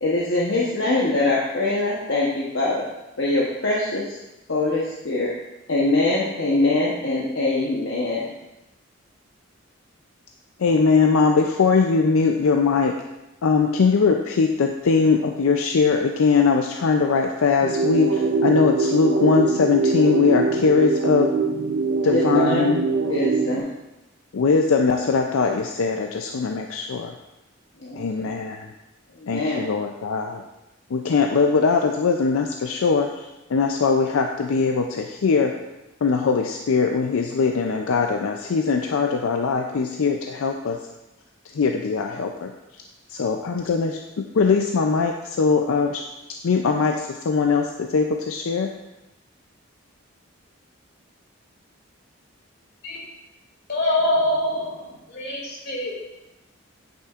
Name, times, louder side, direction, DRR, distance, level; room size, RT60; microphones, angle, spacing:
voice 1, 0.0-2.9 3.2-4.1 4.5-5.3 5.7-8.3 22.1-22.8 23.1-23.7 27.8-28.3 29.2-29.6, left 2 dB, 65° left, -5 dB, 0.9 m, -23 dB
voice 2, 10.6-13.0 13.4-21.3 22.0-22.8 24.3-27.1 27.9-28.7 29.3-30.4 30.9-35.5 36.0-40.8 41.5-42.5 43.1-46.0 46.4-48.7, left 5 dB, 85° left, 3 dB, 0.4 m, -21 dB
sound 1, 17.6-23.6, right 4 dB, 80° right, 0.5 m, -23 dB
voice 3, 53.7-55.9, left 1 dB, 50° left, -5 dB, 2.4 m, -24 dB
8.3 x 6.3 x 2.4 m, 0.97 s
head